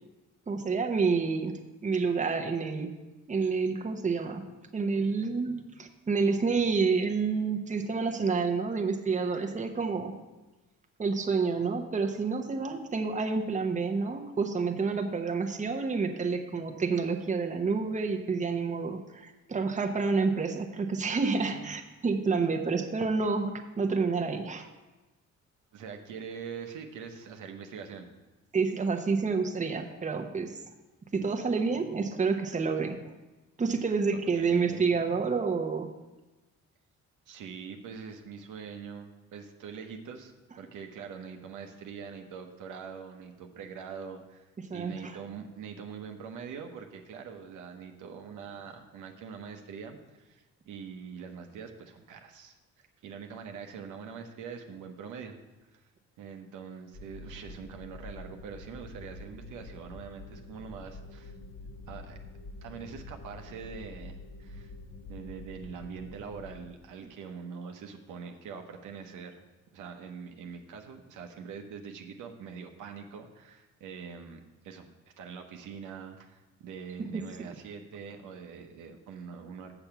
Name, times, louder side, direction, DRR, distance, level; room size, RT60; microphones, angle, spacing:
voice 1, 0.5-3.0 3.3-10.1 11.0-24.7 28.5-30.6 31.1-33.0 33.6-35.9 44.7-45.1, right 4 dB, 25° right, 5 dB, 0.9 m, -29 dB
voice 2, 25.7-28.1 34.1-34.9 37.3-55.4 55.6-55.9 56.2-61.3 61.9-62.2 62.6-64.7 65.1-69.4 69.7-74.9 75.2-79.7, right 6 dB, 85° right, 4 dB, 1.0 m, -43 dB
sound 1, 56.9-66.7, left 2 dB, 50° left, 1.6 m, -46 dB
7.0 x 7.0 x 5.8 m, 1.1 s
cardioid pair, 90°, 30 cm